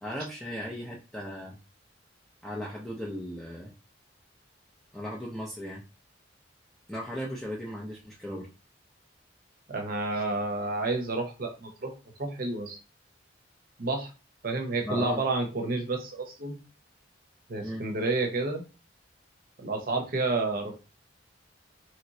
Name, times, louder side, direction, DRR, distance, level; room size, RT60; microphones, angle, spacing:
voice 1, 0.0-1.6 2.4-3.7 4.9-5.8 6.9-8.5 14.8-15.2 17.6-17.9, equal, ahead, -4 dB, 0.5 m, -36 dB
voice 2, 9.7-11.9 12.2-12.8 13.8-14.1 14.4-16.6 17.5-18.6 19.6-20.8, right 3 dB, 50° right, 3 dB, 0.8 m, -30 dB
3.1 x 2.9 x 2.7 m, 0.31 s
head